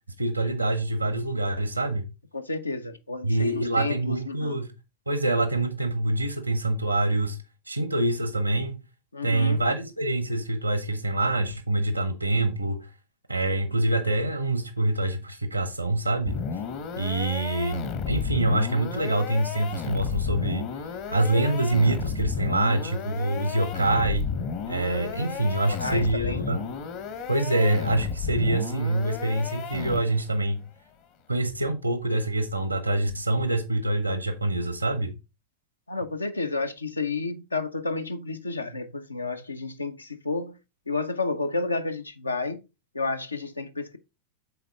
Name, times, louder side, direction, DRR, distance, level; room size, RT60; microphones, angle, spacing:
voice 1, 0.2-2.1 3.2-4.7 5.1-7.4 7.7-8.8 9.2-12.9 13.3-16.4 17.0-20.7 21.1-24.3 24.7-26.7 27.3-30.6 31.3-35.1, right 2 dB, 85° right, 0.9 m, -25 dB
voice 2, 2.3-4.6 9.1-9.6 25.6-26.4 35.9-40.6 40.9-42.6 42.9-44.0, left 3 dB, 80° left, 0.6 m, -31 dB
sound 1, 16.3-30.3, left 6 dB, 45° left, 1.0 m, -33 dB
6.9 x 4.0 x 3.4 m
figure-of-eight pair, 90°, 0 cm